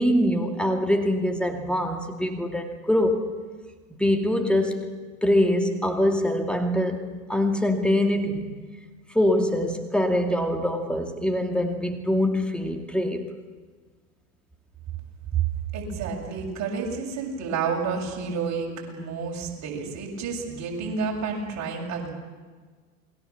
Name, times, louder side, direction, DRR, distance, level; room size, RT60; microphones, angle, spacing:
voice 1, 0.0-3.3 4.0-8.5 9.1-13.3, left 1 dB, ahead, 3 dB, 2.5 m, -24 dB
voice 2, 15.7-22.1, right 5 dB, 40° right, -1 dB, 7.4 m, -30 dB
28.5 x 20.5 x 7.3 m, 1.4 s
hypercardioid pair, 90°, 44 cm